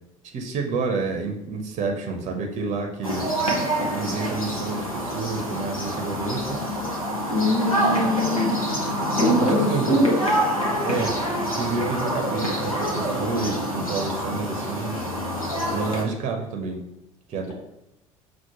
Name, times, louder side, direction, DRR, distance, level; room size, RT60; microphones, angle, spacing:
voice 1, 0.3-3.3 3.9-6.5 9.3-10.1 10.8-11.1 11.5-15.0 15.7-16.8 17.3-17.5, right 4 dB, 40° right, 2 dB, 0.6 m, -29 dB
sound 1, 3.0-16.0, equal, 90° left, 0.6 m, -26 dB
voice 2, 7.3-8.6 9.2-10.1, left 1 dB, 75° left, -3 dB, 1.1 m, -22 dB
5.7 x 2.1 x 3.0 m, 0.89 s
figure-of-eight pair, 60°, 17 cm